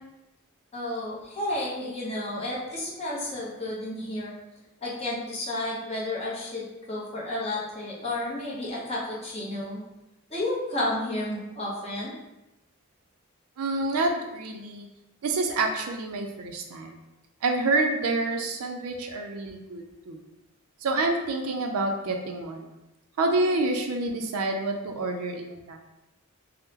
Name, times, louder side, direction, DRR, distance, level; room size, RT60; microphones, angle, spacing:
voice 1, 0.7-4.3 4.8-9.8 10.3-12.1, left 1 dB, 25° left, -6 dB, 0.7 m, -31 dB
voice 2, 13.6-14.9 15.2-17.0 17.4-20.2 20.8-22.7 23.2-25.8, right 2 dB, 75° right, 4 dB, 0.4 m, -28 dB
3.5 x 2.0 x 2.8 m, 0.95 s
head